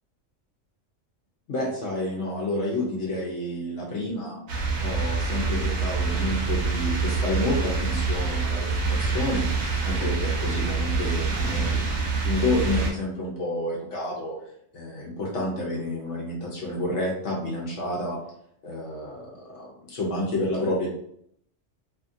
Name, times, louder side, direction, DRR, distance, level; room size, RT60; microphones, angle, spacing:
voice 1, 1.5-4.4 4.8-9.5 9.8-14.4 14.7-18.2 18.6-20.9, left 1 dB, 70° left, -3 dB, 1.0 m, -29 dB
sound 1, 4.5-12.9, right 4 dB, 90° right, 1.1 m, -26 dB
2.8 x 2.4 x 2.6 m, 0.69 s
omnidirectional pair, 1.3 m